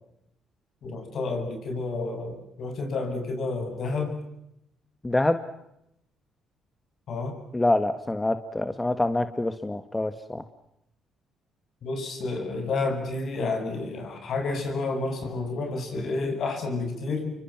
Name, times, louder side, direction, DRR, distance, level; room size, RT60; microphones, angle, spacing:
voice 1, 0.8-4.2 7.1-7.4 11.8-17.3, left 3 dB, 60° left, 5 dB, 8.0 m, -30 dB
voice 2, 5.0-5.4 7.5-10.4, left 2 dB, 15° left, 10 dB, 1.6 m, -26 dB
29.5 x 24.0 x 6.1 m, 0.82 s
cardioid pair, 85°, 0 cm